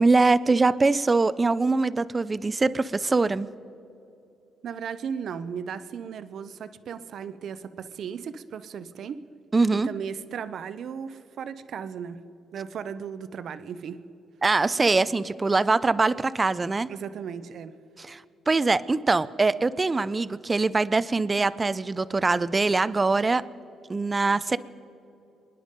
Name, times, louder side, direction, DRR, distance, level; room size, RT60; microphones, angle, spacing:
voice 1, 0.0-3.5 9.5-9.9 14.4-16.9 18.0-23.4 23.9-24.6, right 3 dB, 25° right, 17 dB, 0.5 m, -23 dB
voice 2, 4.6-9.2 9.7-12.2 12.5-14.0 16.9-17.7, right 7 dB, 65° right, 13 dB, 0.7 m, -36 dB
26.0 x 10.0 x 5.2 m, 2.8 s
cardioid pair, 90°, 0 cm